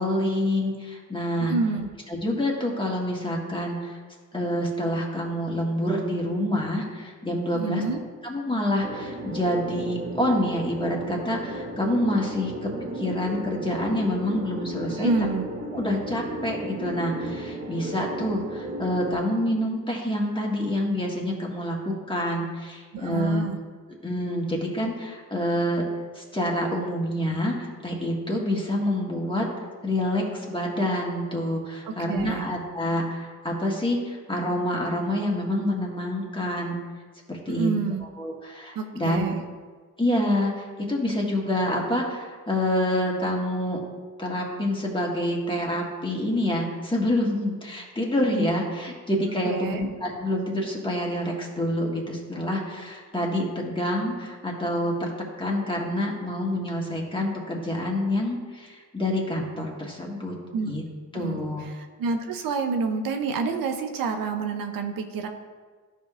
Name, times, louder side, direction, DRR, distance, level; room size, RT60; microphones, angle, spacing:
voice 1, 0.0-1.5 2.1-4.0 4.3-7.8 8.2-12.7 13.0-15.1 15.7-23.5 24.0-25.9 26.2-29.5 29.8-36.8 37.3-37.7 38.2-39.2 40.0-43.8 44.2-55.1 55.4-60.4 60.7-60.8 61.1-61.7, left 1 dB, 15° left, -2 dB, 1.7 m, -27 dB
voice 2, 1.4-1.9 7.5-8.0 14.9-15.5 22.9-23.6 31.9-32.5 37.5-38.0 38.7-39.4 49.4-49.9 60.5-60.7 61.1-61.4 61.7-65.3, right 4 dB, 85° right, 5 dB, 0.7 m, -28 dB
sound 1, 8.8-19.1, right 1 dB, 25° right, 0.8 m, -35 dB
12.0 x 5.2 x 2.5 m, 1.5 s
cardioid pair, 70°, 33 cm